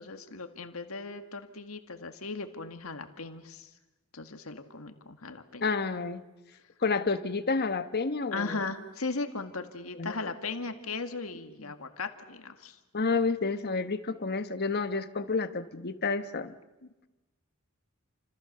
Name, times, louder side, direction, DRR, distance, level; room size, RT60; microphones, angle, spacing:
voice 1, 0.0-3.7 4.1-5.7 8.3-12.8 16.8-16.9, left 3 dB, 75° left, 7 dB, 2.1 m, -37 dB
voice 2, 5.6-6.2 6.8-8.6 10.0-10.1 12.9-16.5, left 4 dB, 50° left, 10 dB, 1.2 m, -30 dB
29.0 x 27.0 x 6.8 m, 1.1 s
head